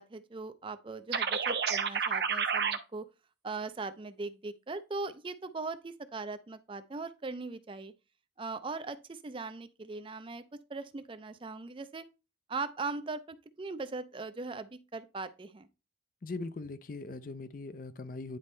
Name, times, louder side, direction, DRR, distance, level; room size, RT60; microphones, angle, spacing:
voice 1, 0.0-3.1 3.4-7.9 8.4-12.1 12.5-15.7, right 3 dB, 30° right, 0.4 m, -40 dB
sound 1, 1.1-2.8, right 6 dB, 60° right, 0.7 m, -29 dB
voice 2, 16.2-18.4, left 3 dB, 45° left, 0.4 m, -40 dB
9.8 x 4.2 x 3.2 m
head